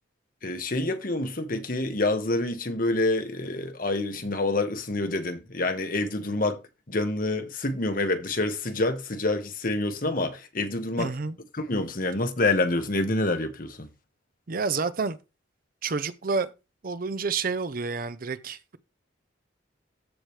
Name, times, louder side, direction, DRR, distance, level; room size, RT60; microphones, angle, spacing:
voice 1, 0.4-6.6 6.9-11.1 11.5-13.9, left 2 dB, 45° left, 1.2 m, -27 dB
voice 2, 11.0-11.4 14.5-15.2 15.8-16.5 16.8-18.8, right 4 dB, 45° right, 0.6 m, -29 dB
14.0 x 4.8 x 3.2 m
head